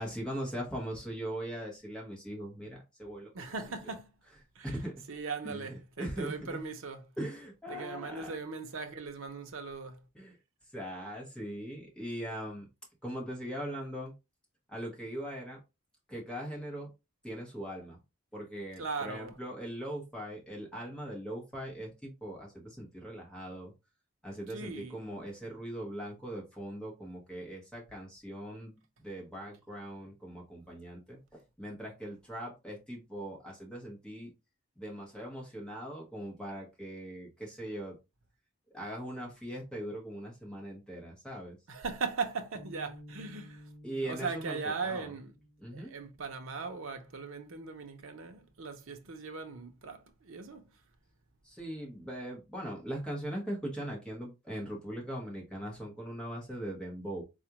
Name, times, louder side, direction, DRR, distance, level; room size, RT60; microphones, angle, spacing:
voice 1, 0.0-3.5 3.8-3.9 4.8-5.1 5.4-6.6 7.2-8.3 10.1-10.4 10.7-12.7 13.0-14.1 14.7-15.6 16.1-16.9 17.2-18.0 18.3-23.7 24.2-34.3 34.8-38.0 38.7-41.6 43.8-45.1 45.6-45.9 51.4-57.2, right 1 dB, 5° left, 1.0 m, -40 dB
voice 2, 3.3-4.1 4.6-4.8 5.1-7.1 7.7-10.0 18.8-19.3 24.5-25.0 41.7-43.6 44.1-45.3 45.7-50.7, right 4 dB, 70° right, 0.6 m, -39 dB
sound 1, 42.5-49.0, equal, 25° left, 0.9 m, -55 dB
4.1 x 2.4 x 2.9 m
head